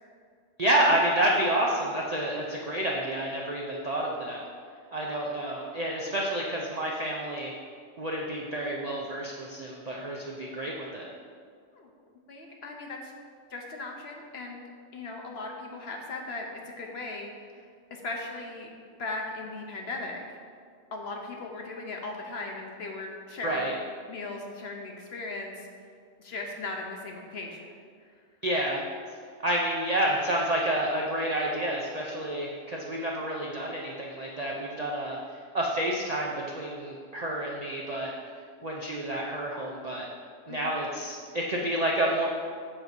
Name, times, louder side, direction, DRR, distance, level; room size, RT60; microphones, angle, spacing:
voice 1, 0.6-4.4 4.9-7.5 8.0-11.1 23.4-23.7 28.4-28.8 29.4-35.2 35.5-38.1 38.6-40.1 40.5-42.3, right 1 dB, 55° right, -2 dB, 0.4 m, -29 dB
voice 2, 12.3-13.1 13.5-14.6 14.9-17.6 17.9-18.7 19.0-20.2 20.9-23.7 24.1-25.7 26.2-27.8 40.5-40.7, left 3 dB, 55° left, 1 dB, 0.9 m, -38 dB
7.8 x 2.7 x 5.9 m, 2.1 s
omnidirectional pair, 1.4 m